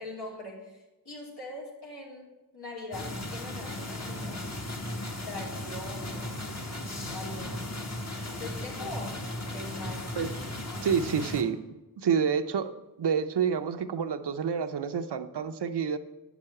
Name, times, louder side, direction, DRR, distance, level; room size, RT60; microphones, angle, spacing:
voice 1, 0.0-4.4 5.2-6.3 7.1-7.8 8.4-10.1 11.0-11.1, left 2 dB, 75° left, -4 dB, 2.9 m, -42 dB
sound 1, 2.9-11.4, left 1 dB, 40° left, 1.4 m, -36 dB
voice 2, 10.8-11.6 12.0-12.7 13.0-16.0, right 7 dB, 85° right, 9 dB, 0.7 m, -28 dB
9.2 x 6.0 x 7.7 m, 1.1 s
wide cardioid pair, 75°, 39 cm